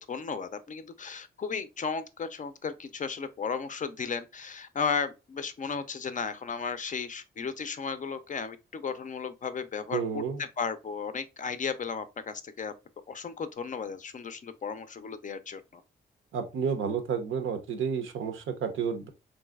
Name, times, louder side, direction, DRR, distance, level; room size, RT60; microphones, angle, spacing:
voice 1, 0.0-12.7 13.1-15.8, left 5 dB, 40° left, 0.4 m, -35 dB
voice 2, 9.9-10.4 16.3-19.1, right 6 dB, 80° right, 0.5 m, -31 dB
3.1 x 2.6 x 2.3 m
cardioid pair, 60°, 20 cm